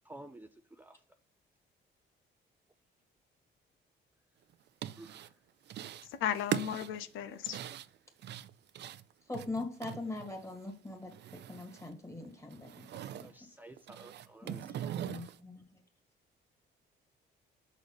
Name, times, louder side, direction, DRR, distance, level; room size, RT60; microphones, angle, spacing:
voice 1, 0.0-1.0 5.0-5.4 13.0-14.9, right 1 dB, 10° right, 6 dB, 0.5 m, -53 dB
sound 1, 4.5-5.3 5.7-6.1 6.4-10.6 10.9-11.9 12.2-13.3 13.8-15.4, right 11 dB, 60° right, 0.5 m, -41 dB
voice 2, 6.1-7.6, left 10 dB, 85° left, 12 dB, 0.5 m, -35 dB
voice 3, 9.3-13.3 14.4-15.7, left 2 dB, 15° left, 3 dB, 2.0 m, -42 dB
6.1 x 4.1 x 5.2 m, 0.39 s
cardioid pair, 90°, 20 cm